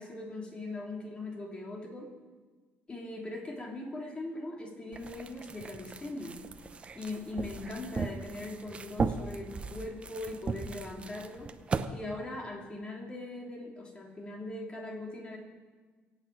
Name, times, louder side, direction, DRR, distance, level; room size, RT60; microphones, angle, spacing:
voice 1, 0.0-2.1 2.9-6.4 6.9-11.5 11.9-15.4, left 2 dB, 25° left, -1 dB, 3.2 m, -40 dB
sound 1, 4.9-11.8, right 4 dB, 30° right, 0.8 m, -37 dB
23.5 x 9.0 x 4.7 m, 1.4 s
cardioid pair, 110°, 4 cm